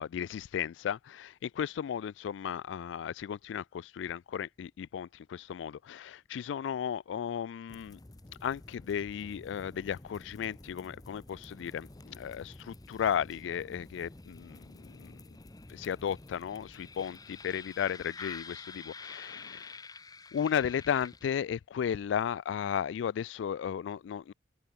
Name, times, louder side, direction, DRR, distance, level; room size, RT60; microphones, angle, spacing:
voice 1, 0.0-8.0 8.4-15.2 15.7-19.8 20.3-24.3, left 8 dB, 85° left, 0.3 m, -35 dB
sound 1, 7.7-21.6, left 3 dB, 20° left, 0.8 m, -49 dB
open air
head